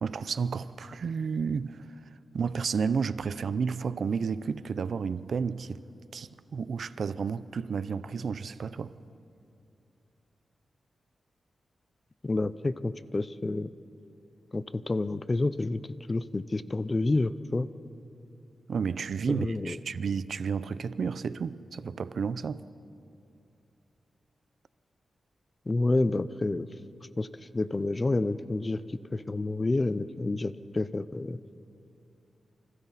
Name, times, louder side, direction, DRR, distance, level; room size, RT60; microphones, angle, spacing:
voice 1, 0.0-1.9 2.3-5.8 6.1-8.9 18.7-22.6, right 5 dB, 65° right, 0.6 m, -31 dB
voice 2, 12.2-13.7 14.5-15.8 16.1-17.7 19.3-19.8 25.7-26.7 27.2-27.3 27.5-28.8 29.1-31.4, left 2 dB, 25° left, 0.6 m, -29 dB
28.5 x 25.5 x 4.1 m
wide cardioid pair, 115°, 0 cm